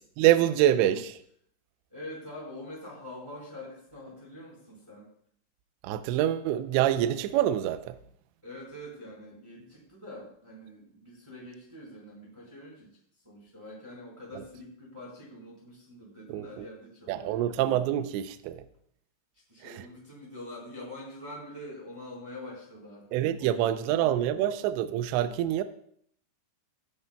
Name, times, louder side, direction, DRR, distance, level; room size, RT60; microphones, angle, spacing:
voice 1, 0.2-1.2 5.8-8.0 16.3-16.7 17.1-18.6 19.6-19.8 23.1-25.6, right 12 dB, 80° right, 2.6 m, -26 dB
voice 2, 1.9-5.1 8.4-13.0 13.2-17.6 19.3-24.8, left 1 dB, 5° right, 3.4 m, -45 dB
17.0 x 10.0 x 2.3 m
omnidirectional pair, 5.7 m